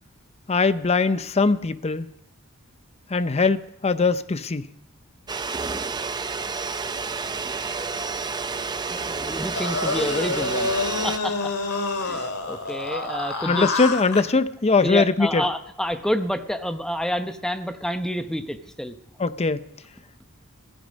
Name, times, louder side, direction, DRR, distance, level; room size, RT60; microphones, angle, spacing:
voice 1, 0.5-2.1 3.1-4.7 13.5-15.4 19.2-19.6, left 4 dB, 30° left, 0.6 m, -21 dB
sound 1, 5.3-11.2, right 4 dB, 20° right, 0.5 m, -30 dB
voice 2, 8.7-10.7 11.0-11.5 12.0-13.7 14.8-18.9, equal, 5° left, 0.9 m, -29 dB
sound 2, 9.5-14.2, left 3 dB, 80° left, 2.2 m, -27 dB
16.0 x 15.0 x 5.2 m
head